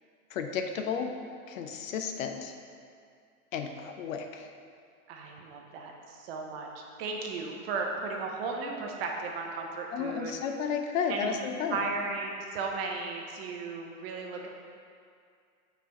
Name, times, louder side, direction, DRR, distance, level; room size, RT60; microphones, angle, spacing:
voice 1, 0.3-1.2 1.5-2.5 3.5-4.5 9.9-11.9, left 6 dB, 65° left, 5 dB, 0.7 m, -33 dB
voice 2, 5.1-6.7 7.0-10.3 11.1-11.3 11.7-14.5, right 4 dB, 40° right, 1 dB, 0.9 m, -35 dB
5.8 x 4.5 x 4.2 m, 2.3 s
hypercardioid pair, 135°, 45 cm